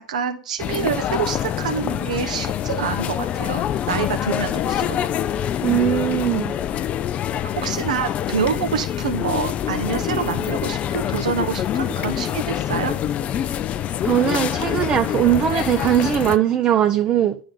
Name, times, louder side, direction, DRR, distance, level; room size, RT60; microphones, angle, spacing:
voice 1, 0.1-5.0 7.6-12.9, right 6 dB, 80° right, 0.9 m, -26 dB
sound 1, 0.6-16.4, left 10 dB, 35° left, 0.4 m, -25 dB
voice 2, 5.6-6.6 14.0-17.4, right 10 dB, 35° right, 0.6 m, -20 dB
9.9 x 3.9 x 5.2 m
hypercardioid pair, 100°, 4 cm